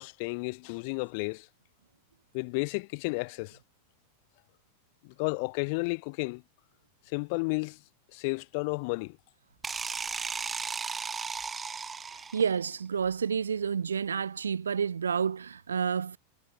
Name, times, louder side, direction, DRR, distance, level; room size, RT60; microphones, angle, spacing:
voice 1, 0.0-1.5 2.3-3.6 5.0-6.4 7.1-7.8 8.1-9.2, left 31 dB, 45° left, 1.4 m, -32 dB
sound 1, 9.6-12.6, right 5 dB, 15° right, 1.0 m, -35 dB
voice 2, 12.3-16.2, right 6 dB, 70° right, 0.6 m, -29 dB
figure-of-eight pair, 90°, 0 cm